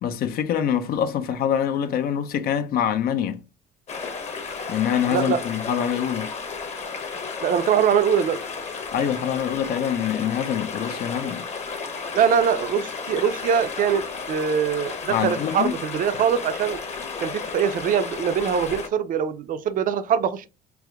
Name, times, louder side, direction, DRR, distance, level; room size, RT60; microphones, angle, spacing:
voice 1, 0.0-3.4 4.7-6.3 8.9-11.5 15.1-15.8, left 9 dB, 65° left, 0.5 m, -25 dB
sound 1, 3.9-18.9, left 5 dB, 40° left, 1.0 m, -33 dB
voice 2, 7.4-8.4 12.1-16.8 17.2-20.5, right 7 dB, 55° right, 0.5 m, -23 dB
4.6 x 2.0 x 3.5 m
cardioid pair, 110°, 17 cm